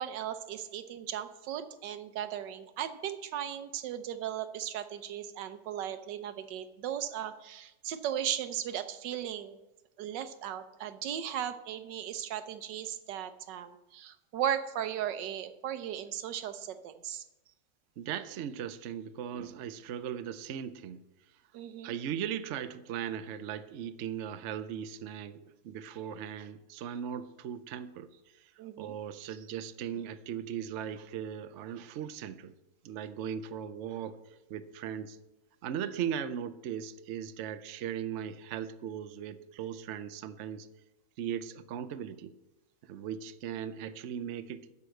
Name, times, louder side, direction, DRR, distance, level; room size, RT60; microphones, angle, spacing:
voice 1, 0.0-9.6 10.0-17.2 21.5-22.0 28.6-28.9, right 10 dB, 80° right, 10 dB, 1.4 m, -37 dB
voice 2, 18.0-21.0 21.8-28.5 28.8-32.5 32.8-34.2 34.5-35.2 35.6-40.7 41.2-42.3 42.8-44.7, right 9 dB, 65° right, 12 dB, 0.7 m, -38 dB
12.5 x 4.9 x 7.8 m, 0.96 s
omnidirectional pair, 1.9 m